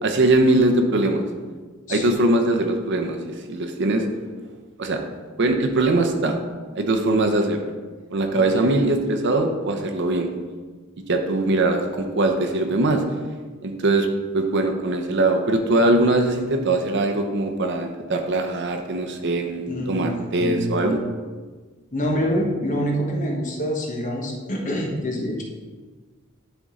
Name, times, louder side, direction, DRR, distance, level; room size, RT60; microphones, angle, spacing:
voice 1, 0.0-1.2 1.9-4.0 4.8-5.0 5.4-6.4 6.7-7.6 8.1-10.3 11.1-13.0 13.6-14.1 14.3-21.0, right 2 dB, 60° right, 4 dB, 0.7 m, -21 dB
voice 2, 8.3-8.7 19.7-21.0 21.9-25.4, equal, 40° left, 0 dB, 1.2 m, -26 dB
10.5 x 4.1 x 3.7 m, 1.4 s
head